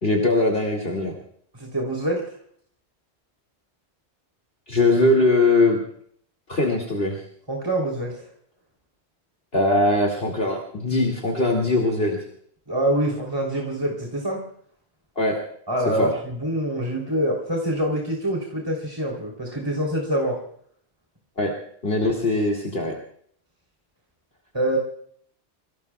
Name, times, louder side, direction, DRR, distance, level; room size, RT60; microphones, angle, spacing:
voice 1, 0.0-1.1 4.7-5.8 6.5-7.2 9.5-12.2 15.2-15.4 16.0-16.1 21.4-21.5 21.8-22.9, left 2 dB, 55° left, 0 dB, 2.7 m, -21 dB
voice 2, 1.5-2.2 7.5-8.2 12.7-14.4 15.7-20.4 24.5-24.8, right 1 dB, 20° right, -1 dB, 3.6 m, -25 dB
28.5 x 18.0 x 2.4 m, 0.62 s
omnidirectional pair, 1.1 m